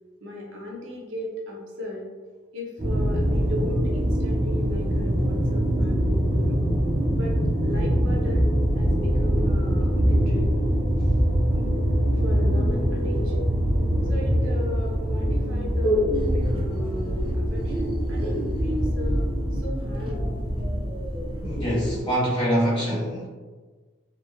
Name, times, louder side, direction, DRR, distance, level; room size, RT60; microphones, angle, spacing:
voice 1, 0.2-2.0 2.5-6.7 7.1-10.5 11.5-11.7 12.1-13.5 14.0-16.1 16.4-20.3, left 1 dB, 75° right, -2 dB, 0.6 m, -37 dB
sound 1, 2.8-22.0, equal, 25° right, 0.4 m, -23 dB
voice 2, 21.4-23.3, equal, 25° left, -9 dB, 1.2 m, -24 dB
2.8 x 2.1 x 2.2 m, 1.4 s
head